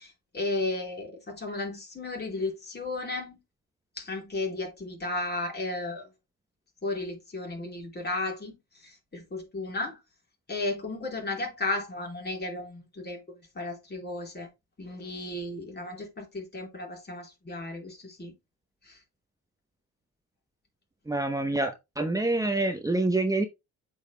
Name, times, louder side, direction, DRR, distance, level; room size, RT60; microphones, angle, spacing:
voice 1, 0.0-3.4 4.0-6.1 6.8-8.6 8.8-10.0 10.5-13.2 13.6-14.5 14.8-18.3 18.9-19.0, left 2 dB, 35° left, 4.3 m, -34 dB
voice 2, 21.1-21.7 22.0-23.4, right 2 dB, 10° right, 0.9 m, -26 dB
8.2 x 5.6 x 2.2 m
cardioid pair, 90°, 30 cm